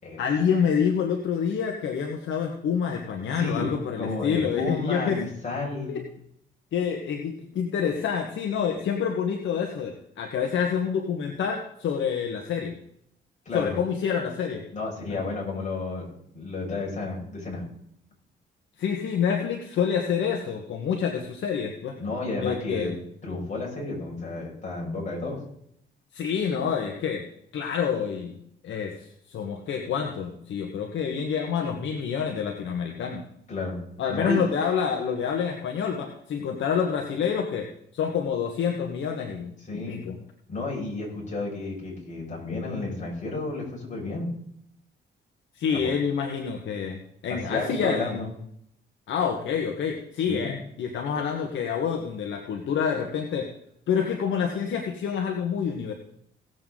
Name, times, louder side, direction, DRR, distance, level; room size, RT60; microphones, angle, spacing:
voice 1, 0.2-5.2 5.9-6.0 6.7-12.8 13.5-14.6 15.1-15.2 18.8-22.0 22.4-22.9 26.1-27.2 27.5-28.4 28.6-33.2 34.0-37.7 37.9-40.2 45.5-48.2 49.1-53.5 53.9-55.9, left 7 dB, 70° left, 3 dB, 1.4 m, -27 dB
voice 2, 3.4-3.7 4.0-6.0 13.5-13.7 14.7-17.6 22.0-22.9 23.2-25.4 33.5-33.8 34.1-34.5 39.7-40.0 40.5-44.3 45.7-45.9 47.3-48.3 50.3-50.5, left 3 dB, 40° left, -3 dB, 5.9 m, -31 dB
18.0 x 7.8 x 3.8 m, 0.72 s
cardioid pair, 90°, 20 cm